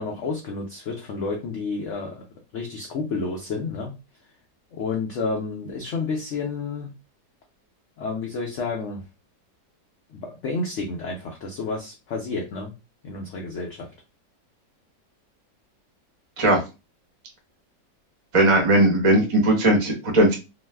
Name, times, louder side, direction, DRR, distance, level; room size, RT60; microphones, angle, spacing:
voice 1, 0.0-2.2 2.5-3.9 4.7-6.9 8.0-9.0 10.1-12.7 13.0-13.9, left 4 dB, 80° left, 1 dB, 0.6 m, -30 dB
voice 2, 18.3-20.3, right 1 dB, 30° right, 0 dB, 0.5 m, -18 dB
3.0 x 2.0 x 3.3 m, 0.28 s
omnidirectional pair, 1.9 m